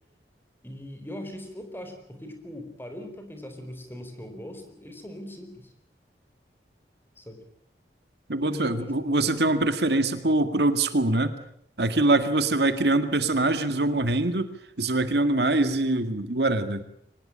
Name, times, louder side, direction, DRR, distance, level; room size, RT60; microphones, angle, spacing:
voice 1, 0.6-5.7 7.2-7.4 8.4-9.1, left 1 dB, 10° left, 6 dB, 4.3 m, -40 dB
voice 2, 8.3-11.3 11.8-14.5 14.8-16.8, right 2 dB, 70° right, 10 dB, 2.0 m, -23 dB
24.5 x 20.0 x 8.9 m, 0.69 s
head